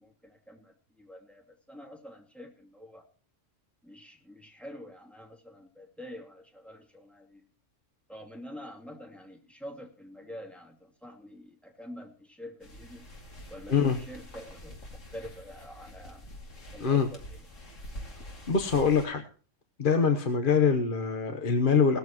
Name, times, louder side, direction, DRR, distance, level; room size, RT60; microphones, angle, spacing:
voice 1, 0.0-3.1 3.8-7.4 8.1-13.0 13.5-16.3 16.7-17.5, equal, ahead, -1 dB, 2.7 m, -47 dB
sound 1, 12.6-19.1, left 1 dB, 80° left, 2.9 m, -46 dB
voice 2, 18.5-19.2 19.8-22.0, left 5 dB, 45° left, 6 dB, 1.2 m, -24 dB
17.5 x 14.0 x 3.0 m, 0.42 s
omnidirectional pair, 1.3 m